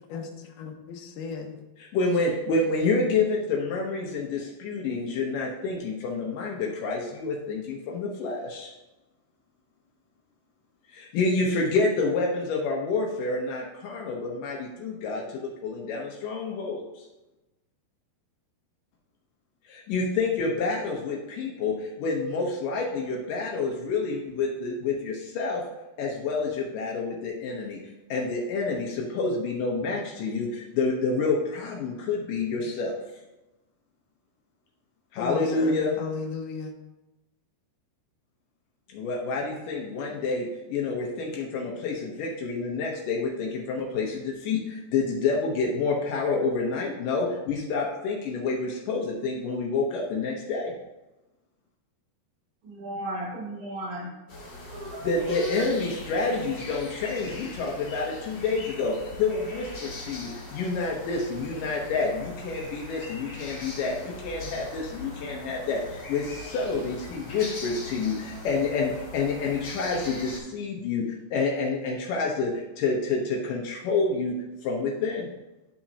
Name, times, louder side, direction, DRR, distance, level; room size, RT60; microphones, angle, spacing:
voice 1, 0.1-1.6 35.2-36.7, left 5 dB, 75° left, 2 dB, 2.4 m, -35 dB
voice 2, 1.8-8.7 10.9-17.0 19.7-25.6 26.0-27.8 28.1-32.9 35.1-36.0 38.9-50.7 55.0-75.3, left 3 dB, 90° left, -1 dB, 1.8 m, -28 dB
voice 3, 52.7-54.1 54.7-55.6, right 1 dB, 90° right, -4 dB, 5.2 m, -35 dB
sound 1, 54.3-70.4, left 2 dB, 50° left, 1.2 m, -41 dB
11.5 x 5.9 x 2.8 m, 1.0 s
omnidirectional pair, 5.2 m